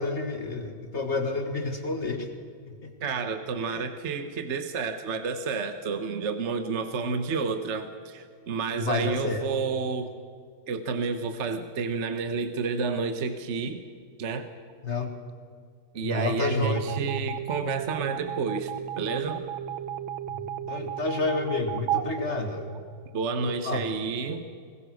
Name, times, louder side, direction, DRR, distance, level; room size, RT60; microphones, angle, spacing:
voice 1, 0.0-2.3 2.7-2.9 3.7-3.9 8.7-9.4 14.8-15.1 16.0-16.8 20.3-22.7 23.4-23.9, left 3 dB, 35° left, 6 dB, 1.9 m, -30 dB
voice 2, 3.0-10.1 10.7-13.8 14.2-14.5 15.9-19.5 23.1-24.6, right 5 dB, 45° right, 9 dB, 1.1 m, -30 dB
sound 1, 16.8-23.2, right 10 dB, 90° right, 1.6 m, -34 dB
21.5 x 20.0 x 6.3 m, 2.2 s
omnidirectional pair, 2.2 m